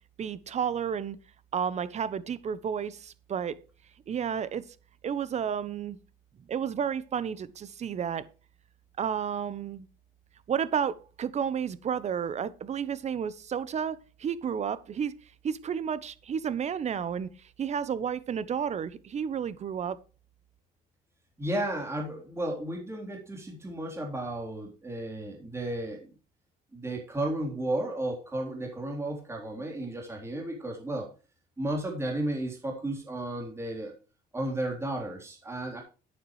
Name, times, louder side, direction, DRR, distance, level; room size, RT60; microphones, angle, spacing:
voice 1, 0.2-1.2 1.5-3.6 4.1-4.6 5.0-6.0 6.5-8.2 9.0-9.9 10.5-15.1 15.4-17.3 17.6-20.0, right 7 dB, 40° right, 17 dB, 1.0 m, -31 dB
voice 2, 21.4-26.1 26.7-31.1 31.6-33.9 34.3-35.8, right 1 dB, 15° right, 1 dB, 3.6 m, -33 dB
11.5 x 9.3 x 3.2 m, 0.34 s
cardioid pair, 110°, 17 cm